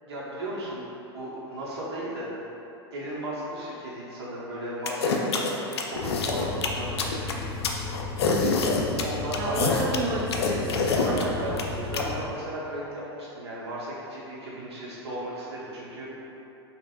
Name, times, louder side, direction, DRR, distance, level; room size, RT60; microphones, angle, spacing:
voice 1, 0.0-0.8 1.1-2.3 2.9-7.2 9.0-9.9 10.9-11.6 11.9-16.1, right 1 dB, 70° right, -7 dB, 1.1 m, -35 dB
sound 1, 4.9-12.0, left 4 dB, 70° left, 0.4 m, -26 dB
sound 2, 5.9-12.5, left 4 dB, 40° left, 1.0 m, -35 dB
voice 2, 8.2-8.7 9.4-12.2, right 3 dB, 30° right, -3 dB, 0.4 m, -33 dB
5.3 x 2.4 x 2.5 m, 2.9 s
figure-of-eight pair, 90°, 14 cm